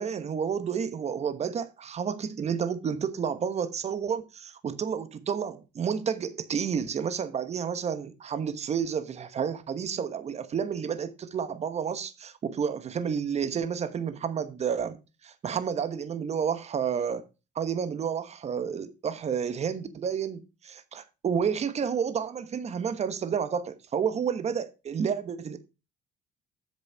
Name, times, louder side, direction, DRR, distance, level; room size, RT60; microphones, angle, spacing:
voice 1, 0.0-17.3 17.5-25.6, right 7 dB, 40° right, 1.2 m, -30 dB
8.1 x 6.7 x 5.5 m
cardioid pair, 110°, 17 cm